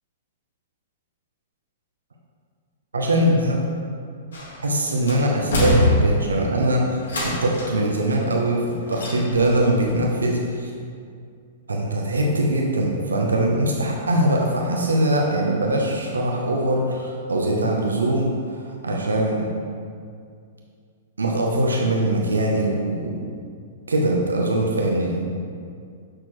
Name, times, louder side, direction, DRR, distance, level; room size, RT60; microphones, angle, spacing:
voice 1, 2.9-3.6 4.6-10.7 11.7-18.4 18.8-19.5 21.2-23.3 23.9-25.2, right 1 dB, 85° right, 0 dB, 0.8 m, -22 dB
sound 1, 4.3-4.7 5.1-6.4 7.0-7.8 8.9-9.6 9.9-10.0, left 1 dB, 80° left, 1.6 m, -23 dB
6.5 x 6.0 x 3.0 m, 2.2 s
hypercardioid pair, 115°, 0 cm